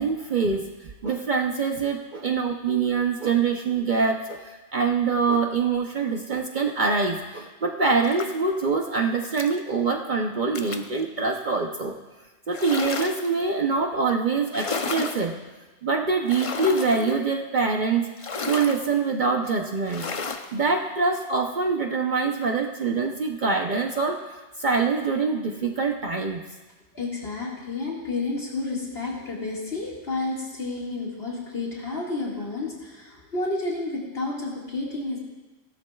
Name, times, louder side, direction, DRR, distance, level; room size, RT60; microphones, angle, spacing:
voice 1, 0.0-12.0 12.5-15.3 15.8-18.1 18.5-26.4, right 4 dB, 50° right, 2 dB, 0.8 m, -25 dB
sound 1, 8.0-8.5 9.4-9.6 10.5-10.9 12.5-13.4 14.5-15.3 16.3-17.2 18.2-18.9 19.8-20.5, left 4 dB, 40° left, 0.5 m, -32 dB
voice 2, 26.9-35.2, left 3 dB, 60° left, -4 dB, 2.2 m, -30 dB
18.0 x 12.0 x 2.3 m, 1.2 s
omnidirectional pair, 1.2 m